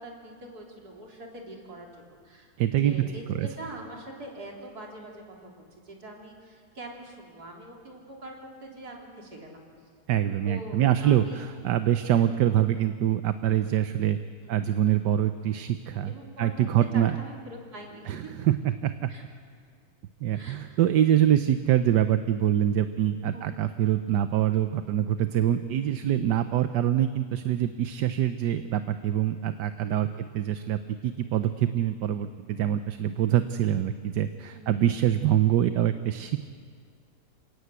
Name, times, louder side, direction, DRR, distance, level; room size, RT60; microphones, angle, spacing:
voice 1, 0.0-9.7 10.5-11.4 12.2-12.3 14.4-14.6 16.0-16.6 16.9-18.3 19.1-19.2 20.3-20.8 23.3-23.8 26.3-26.5 27.4-27.5 29.8-30.3 34.5-34.9, right 1 dB, 65° right, -1 dB, 4.1 m, -44 dB
voice 2, 2.6-3.0 3.3-3.5 10.1-14.2 14.5-16.1 16.4-17.1 18.1-19.1 20.2-36.5, right 11 dB, 85° right, 10 dB, 1.4 m, -25 dB
28.0 x 17.5 x 8.2 m, 2.1 s
omnidirectional pair, 1.8 m